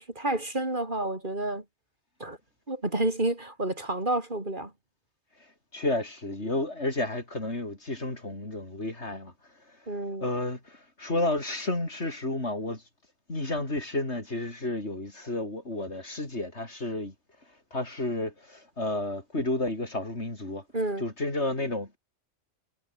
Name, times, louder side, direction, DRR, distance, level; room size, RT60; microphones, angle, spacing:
voice 1, 0.0-1.6 2.2-2.4 2.7-4.7 9.9-10.3 20.7-21.0, right 2 dB, 40° right, 3.8 m, -30 dB
voice 2, 5.7-9.3 10.2-12.8 13.3-17.1 17.7-20.6 21.0-22.0, left 2 dB, 65° left, 5.5 m, -31 dB
omnidirectional pair, 1.2 m